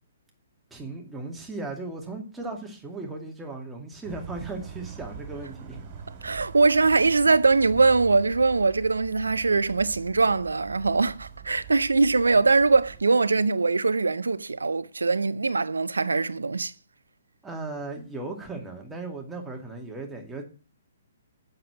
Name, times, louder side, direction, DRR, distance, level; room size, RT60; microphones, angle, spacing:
voice 1, 0.7-5.8 17.4-20.4, right 3 dB, 10° right, 2.3 m, -37 dB
sound 1, 4.0-13.0, right 7 dB, 40° right, 2.4 m, -44 dB
voice 2, 6.2-16.7, right 3 dB, 75° right, 0.5 m, -22 dB
7.6 x 6.8 x 7.8 m
figure-of-eight pair, 125°, 0 cm